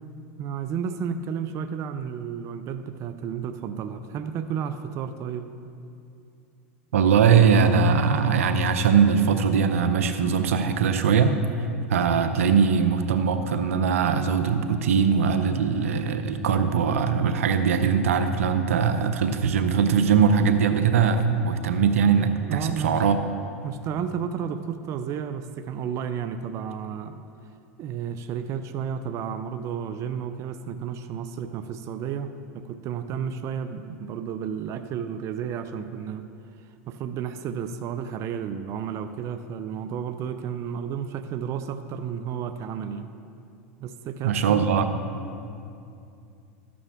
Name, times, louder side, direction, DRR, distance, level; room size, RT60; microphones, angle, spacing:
voice 1, 0.4-5.5 22.5-23.0 23.6-27.2 27.8-36.3 36.9-43.1 43.8-44.7, right 7 dB, 45° right, 9 dB, 0.5 m, -32 dB
voice 2, 6.9-11.4 11.9-23.2 44.2-45.0, right 6 dB, 85° right, 9 dB, 0.7 m, -21 dB
12.5 x 8.5 x 3.6 m, 2.6 s
hypercardioid pair, 105°, 7 cm